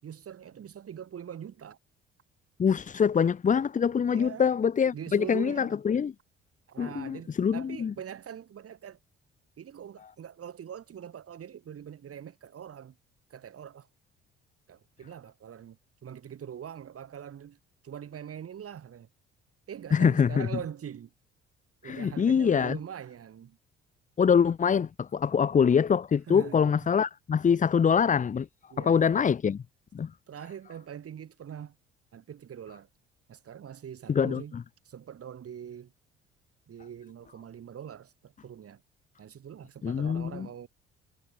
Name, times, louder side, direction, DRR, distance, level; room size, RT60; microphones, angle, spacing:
voice 1, 0.0-1.8 4.1-4.5 4.9-5.8 6.7-9.0 9.6-13.0 13.3-13.9 14.7-17.6 17.8-19.1 19.7-21.1 21.8-23.6 26.3-26.8 28.7-29.2 30.3-31.7 32.1-32.9 33.3-34.6 34.8-35.9 36.7-38.8 39.2-40.7, right 9 dB, 45° right, 4.5 m, -43 dB
voice 2, 2.6-6.1 6.8-7.9 19.9-20.5 21.8-22.8 24.2-28.5 28.8-29.6 29.9-30.1 34.1-34.4 39.8-40.5, left 7 dB, 25° left, 0.7 m, -24 dB
figure-of-eight pair, 50°, 32 cm